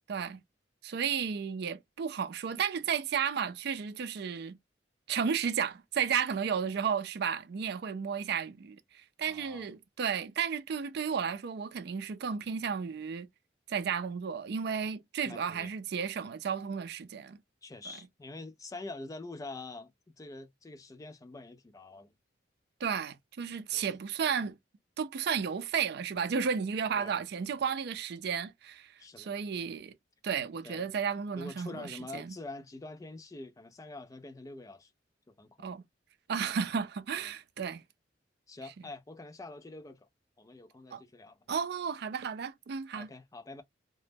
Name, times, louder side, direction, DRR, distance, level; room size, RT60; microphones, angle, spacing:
voice 1, 0.1-0.4 0.8-4.6 5.1-13.3 13.7-17.4 22.8-24.6 25.0-30.0 30.2-32.4 35.6-35.8 36.3-37.8 40.9-41.0 41.5-43.1, right 7 dB, 60° right, 0.4 m, -33 dB
voice 2, 9.3-9.7 15.3-15.7 17.6-22.1 23.7-23.9 27.0-27.1 29.0-29.3 30.6-30.9 31.3-34.9 35.3-35.7 37.2-37.3 38.5-40.1 40.4-41.4 43.0-43.6, left 2 dB, 20° left, 0.3 m, -45 dB
2.1 x 2.0 x 3.2 m
head